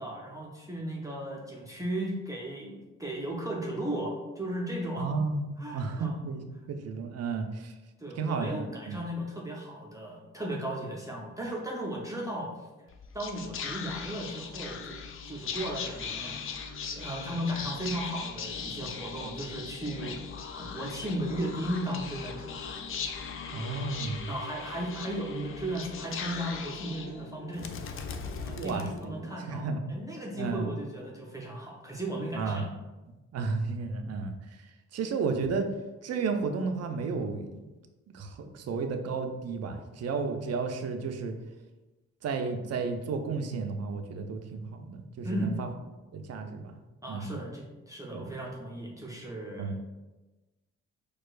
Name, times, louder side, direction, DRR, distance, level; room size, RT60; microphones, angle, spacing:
voice 1, 0.0-5.1 5.6-6.2 8.0-12.5 13.1-15.0 15.3-16.6 16.9-20.2 20.6-22.6 24.3-27.7 28.4-32.6 45.2-45.6 47.0-49.7, right 1 dB, 10° right, -3 dB, 0.7 m, -36 dB
voice 2, 5.0-5.5 5.7-7.7 8.2-9.0 23.5-24.3 28.5-29.1 29.4-29.8 30.3-30.7 32.3-32.7 33.3-34.3 34.9-35.7 36.0-37.7 38.1-41.4 42.2-45.7 46.1-46.7 47.1-47.4 48.1-48.3 49.6-49.8, right 4 dB, 50° right, 6 dB, 0.5 m, -32 dB
Whispering, 12.9-29.5, left 5 dB, 40° left, 0.4 m, -39 dB
4.4 x 2.3 x 2.4 m, 1.1 s
hypercardioid pair, 45°, 33 cm